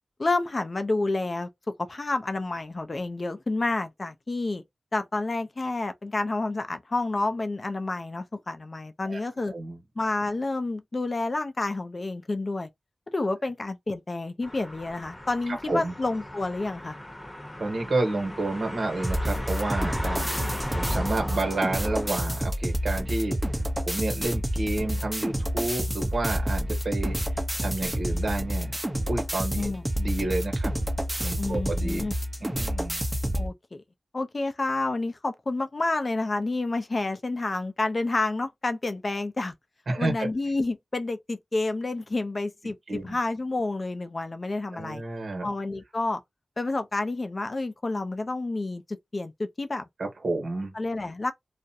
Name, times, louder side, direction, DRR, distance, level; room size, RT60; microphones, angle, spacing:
voice 1, 0.2-1.5 1.8-4.6 4.9-9.5 10.0-12.7 13.1-17.0 29.6-29.9 31.4-32.1 33.3-33.8 34.1-39.5 40.0-45.0 45.4-46.2 46.6-49.8 50.7-51.3, left 2 dB, 50° left, 0.5 m, -29 dB
sound 1, 14.4-22.4, left 1 dB, 20° left, 0.9 m, -38 dB
voice 2, 17.6-20.3 20.7-23.4 23.8-27.2 27.6-28.8 29.1-30.8 31.2-32.0 32.4-33.0 39.9-40.3 42.9-43.2 44.7-45.5 50.0-50.7, right 2 dB, 80° right, 1.0 m, -30 dB
sound 2, 19.0-33.5, equal, 15° right, 0.7 m, -29 dB
2.4 x 2.1 x 2.7 m
wide cardioid pair, 60°, 0 cm